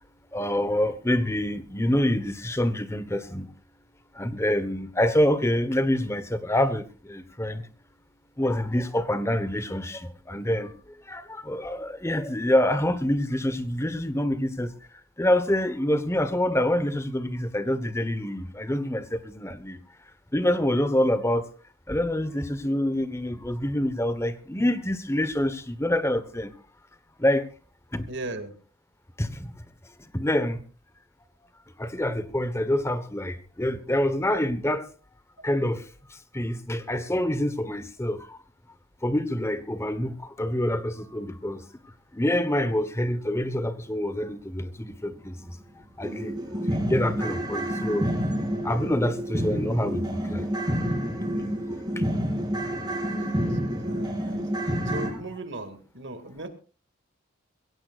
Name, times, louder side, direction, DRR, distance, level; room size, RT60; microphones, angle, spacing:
voice 1, 0.3-3.5 4.1-7.7 8.4-10.7 11.1-14.7 15.2-19.8 20.3-21.5 21.9-26.5 27.2-27.4 27.9-28.1 29.2-29.5 30.1-30.6 31.8-34.9 35.4-38.4 39.0-41.6 42.1-45.6 46.0-48.1 48.6-50.7 52.0-52.1, left 1 dB, 15° left, 1.1 m, -26 dB
voice 2, 28.1-28.5 53.1-56.5, right 2 dB, 60° right, 2.2 m, -38 dB
sound 1, 45.1-45.2 45.6-45.7 46.0-55.1, equal, 20° right, 3.2 m, -28 dB
22.5 x 17.0 x 2.5 m
head